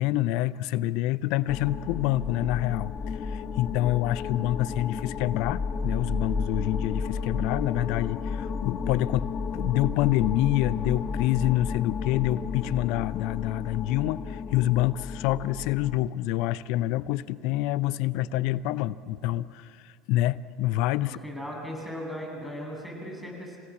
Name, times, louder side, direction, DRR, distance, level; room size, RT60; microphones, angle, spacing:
voice 1, 0.0-21.2, left 15 dB, 65° left, 18 dB, 0.6 m, -27 dB
sound 1, 1.5-16.1, left 5 dB, 40° left, 0.9 m, -32 dB
voice 2, 21.0-23.6, equal, ahead, -1 dB, 7.6 m, -37 dB
28.5 x 16.5 x 7.3 m, 2.3 s
hypercardioid pair, 75°, 0 cm